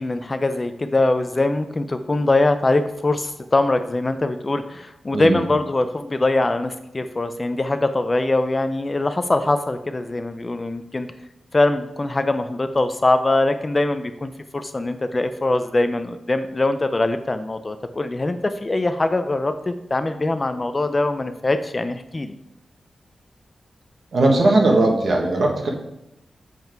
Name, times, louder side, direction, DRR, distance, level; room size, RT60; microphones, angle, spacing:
voice 1, 0.0-11.1 11.5-22.3, left 2 dB, 25° left, 9 dB, 0.4 m, -22 dB
voice 2, 5.1-5.4 24.1-25.7, right 2 dB, 55° right, 1 dB, 1.5 m, -18 dB
7.4 x 5.7 x 4.5 m, 0.83 s
wide cardioid pair, 170°, 0 cm